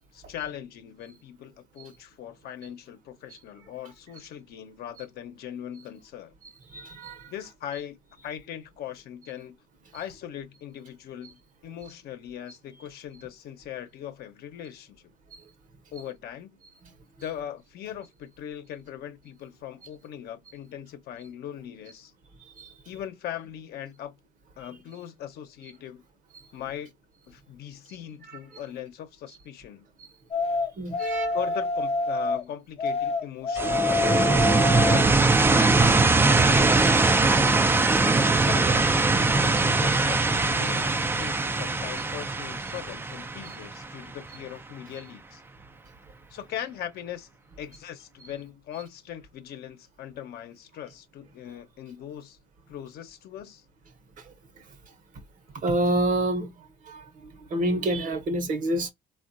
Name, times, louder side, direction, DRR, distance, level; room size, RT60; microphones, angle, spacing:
voice 1, 0.1-6.3 7.3-8.0 8.2-9.5 9.9-15.0 15.9-16.5 17.2-22.1 22.9-24.2 24.6-26.0 26.5-26.9 27.3-29.9 31.0-34.5 34.8-36.6 38.4-39.1 39.4-45.4 46.3-47.3 47.6-52.4 52.7-53.6, left 10 dB, 70° left, 0.8 m, -40 dB
voice 2, 6.7-7.3 15.3-15.4 16.8-16.9 22.6-22.7 30.8-31.4 54.2-54.3 55.6-56.5 56.9-58.9, right 1 dB, 50° right, 1.0 m, -28 dB
sound 1, 30.3-32.4 32.8-35.1, left 3 dB, 35° left, 0.6 m, -26 dB
sound 2, 33.6-44.3, right 3 dB, 15° right, 0.4 m, -21 dB
3.5 x 2.4 x 2.5 m
cardioid pair, 110°, 17 cm